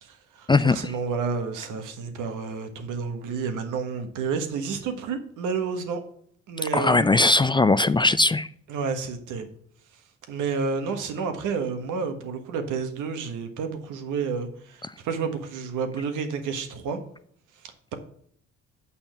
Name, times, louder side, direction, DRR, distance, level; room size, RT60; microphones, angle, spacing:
voice 1, 0.0-6.0 6.5-7.1 8.7-9.5 10.3-17.0, right 5 dB, 90° right, 7 dB, 1.4 m, -30 dB
voice 2, 6.7-8.5, left 3 dB, 15° left, 15 dB, 0.3 m, -19 dB
7.0 x 5.7 x 6.6 m, 0.62 s
cardioid pair, 90°, 30 cm